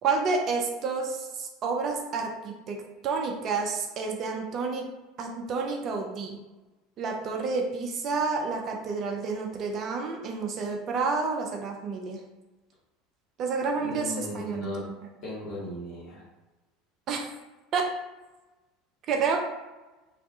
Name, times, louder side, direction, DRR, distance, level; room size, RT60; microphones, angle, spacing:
voice 1, 0.0-4.9 5.2-6.4 7.0-12.2 13.4-15.0 17.1-17.3 17.7-17.9 19.1-19.4, right 4 dB, 40° right, 2 dB, 0.4 m, -29 dB
voice 2, 13.8-14.8 15.2-16.2, left 1 dB, 45° left, -6 dB, 1.1 m, -37 dB
2.4 x 2.1 x 2.6 m, 1.1 s
figure-of-eight pair, 70°, 0 cm